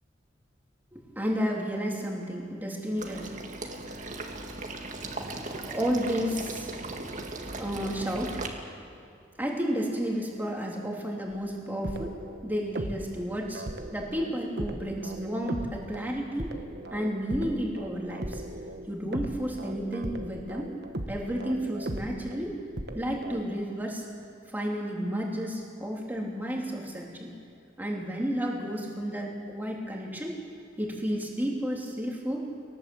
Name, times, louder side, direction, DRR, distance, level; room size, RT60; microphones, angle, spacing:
voice 1, 0.9-3.4 3.8-4.0 5.6-7.0 7.6-8.4 9.4-12.1 12.4-13.6 13.9-16.5 16.9-18.4 18.9-20.7 21.1-22.5 22.9-24.0 24.5-27.3 27.8-30.3 30.8-32.4, equal, 10° right, -2 dB, 3.3 m, -32 dB
Water / Liquid, 3.0-8.5, right 2 dB, 40° right, 1.9 m, -38 dB
sound 1, 11.3-13.2 13.5-23.5, right 1 dB, 60° right, 1.3 m, -38 dB
23.0 x 19.0 x 7.9 m, 2.4 s
head